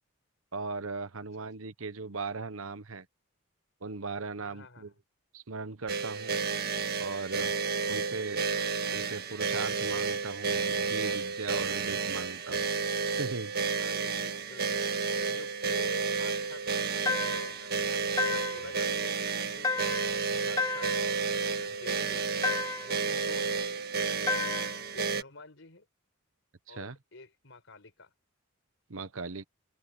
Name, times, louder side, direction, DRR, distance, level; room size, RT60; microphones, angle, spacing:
voice 1, 0.5-3.1 3.8-4.9 5.3-6.4 7.0-7.5 7.9-8.4 8.9-12.7 13.2-13.5 26.7-27.0 28.9-29.4, right 4 dB, 70° right, 1.1 m, -38 dB
voice 2, 4.4-4.9 8.0-8.2 13.8-20.0 20.3-20.9 21.5-22.5 22.8-23.5 24.9-25.9 26.7-28.1, left 2 dB, 60° left, 5.3 m, -49 dB
sound 1, 5.9-25.2, right 5 dB, 45° right, 1.7 m, -31 dB
sound 2, 17.1-17.6 18.2-18.7 19.6-20.2 20.6-21.1 22.4-23.0 24.3-24.8, left 4 dB, 15° left, 0.3 m, -32 dB
open air
head